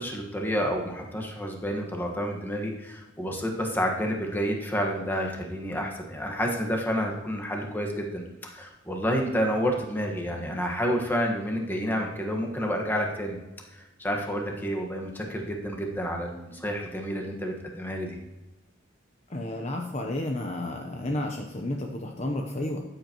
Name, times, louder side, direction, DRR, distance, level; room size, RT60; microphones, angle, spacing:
voice 1, 0.0-13.4 14.0-18.2, equal, 10° left, 1 dB, 1.4 m, -29 dB
voice 2, 19.3-22.8, left 1 dB, 35° left, 2 dB, 0.8 m, -31 dB
14.0 x 8.1 x 3.0 m, 1.1 s
head